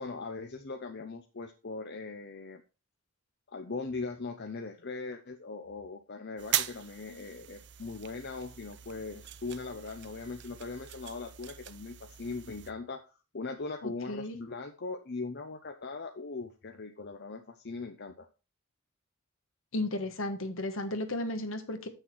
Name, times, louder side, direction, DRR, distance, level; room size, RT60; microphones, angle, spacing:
voice 1, 0.0-2.6 3.5-18.3, left 3 dB, 55° left, 5 dB, 0.8 m, -40 dB
sound 1, 6.4-12.7, right 12 dB, 55° right, 0.5 m, -39 dB
voice 2, 13.8-14.4 19.7-21.9, left 1 dB, 70° left, 7 dB, 1.4 m, -34 dB
7.9 x 6.6 x 4.6 m, 0.32 s
head